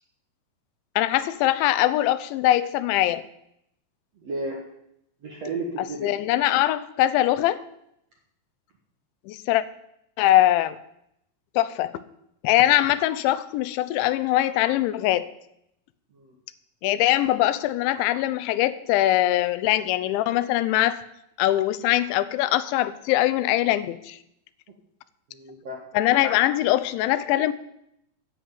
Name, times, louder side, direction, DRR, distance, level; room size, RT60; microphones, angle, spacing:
voice 1, 1.0-3.2 6.0-7.6 9.3-9.6 10.2-10.8 11.6-11.9 12.4-15.3 16.8-21.0 21.4-24.2 25.9-27.5, left 14 dB, 90° left, 15 dB, 3.0 m, -22 dB
voice 2, 4.2-4.6 5.2-6.2 16.1-16.3 25.3-25.8, right 2 dB, 55° right, -1 dB, 1.9 m, -33 dB
10.0 x 8.0 x 9.2 m, 0.78 s
omnidirectional pair, 5.2 m